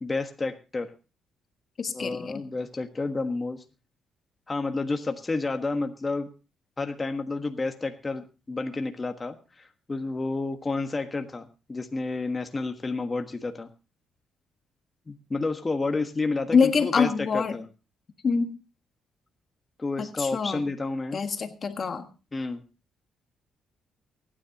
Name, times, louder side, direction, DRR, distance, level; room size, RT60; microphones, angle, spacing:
voice 1, 0.0-0.9 1.9-3.6 4.5-6.3 6.8-13.7 15.1-17.7 19.8-21.2 22.3-22.6, left 3 dB, 25° left, 5 dB, 1.4 m, -30 dB
voice 2, 1.8-2.4 16.5-17.6 18.2-18.5 20.0-20.6 21.1-22.1, left 5 dB, 45° left, 7 dB, 1.5 m, -25 dB
23.5 x 10.0 x 2.9 m, 0.32 s
cardioid pair, 90°, 0 cm